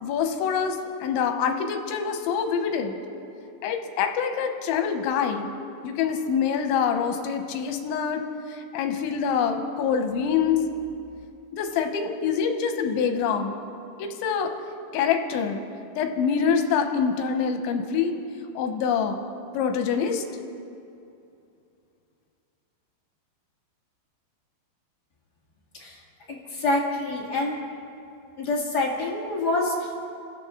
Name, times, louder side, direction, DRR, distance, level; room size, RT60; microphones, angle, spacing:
voice 1, 0.0-3.0 3.6-5.5 5.8-8.2 8.5-10.6 11.5-13.6 14.0-14.5 14.9-15.6 16.0-18.1 18.6-19.2 19.5-20.2, left 7 dB, 90° left, 5 dB, 3.4 m, -25 dB
voice 2, 26.3-27.5 28.4-30.0, left 2 dB, 35° left, -3 dB, 1.7 m, -26 dB
27.0 x 14.0 x 3.8 m, 2.6 s
omnidirectional pair, 5.2 m